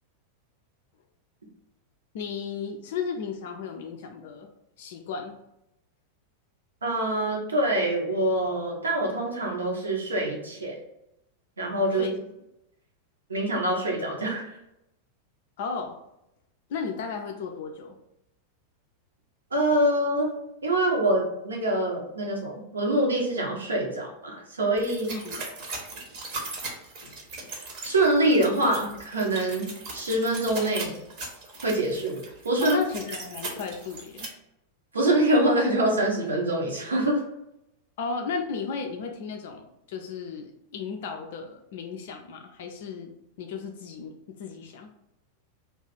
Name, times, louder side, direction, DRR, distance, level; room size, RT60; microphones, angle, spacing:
voice 1, 2.1-4.5 4.8-5.3 12.0-12.2 15.6-16.0 16.7-18.0 25.1-25.4 27.0-27.6 32.6-34.3 38.0-44.9, left 5 dB, 55° left, 3 dB, 0.3 m, -34 dB
voice 2, 6.8-10.8 11.6-12.1 13.3-14.5 19.5-20.3 20.6-25.1 27.8-31.0 31.6-32.2 32.4-32.8 34.9-37.2, right 1 dB, 75° right, -1 dB, 0.8 m, -25 dB
sound 1, 24.8-34.3, right 3 dB, 45° right, 0.8 m, -38 dB
2.4 x 2.3 x 3.9 m, 0.85 s
figure-of-eight pair, 90°, 0 cm